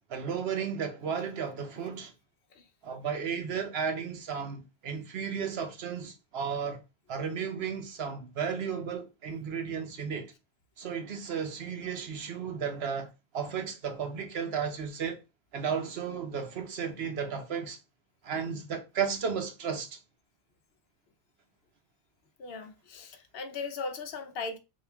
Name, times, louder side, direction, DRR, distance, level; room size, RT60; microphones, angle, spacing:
voice 1, 0.1-2.1 2.8-6.8 7.1-10.3 10.8-15.2 15.5-17.8 18.2-20.0, right 6 dB, 75° right, 1.0 m, -34 dB
voice 2, 22.4-24.6, left 4 dB, 70° left, 0.8 m, -38 dB
3.6 x 2.4 x 3.4 m
omnidirectional pair, 1.1 m